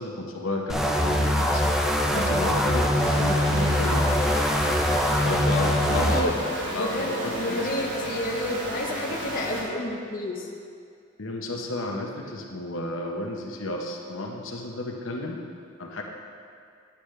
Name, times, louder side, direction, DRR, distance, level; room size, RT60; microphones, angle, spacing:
voice 1, 0.0-1.7 2.1-4.3 5.2-6.4 6.7-7.7 11.2-15.4 15.8-16.0, left 2 dB, 85° left, 0 dB, 0.9 m, -32 dB
sound 1, 0.7-6.2, left 1 dB, ahead, 0.5 m, -23 dB
sound 2, 2.9-9.6, equal, 60° right, 1.8 m, -34 dB
voice 2, 6.0-6.3 6.8-7.1 7.4-10.5, left 1 dB, 45° left, -1 dB, 0.9 m, -30 dB
10.0 x 8.6 x 3.2 m, 2.3 s
head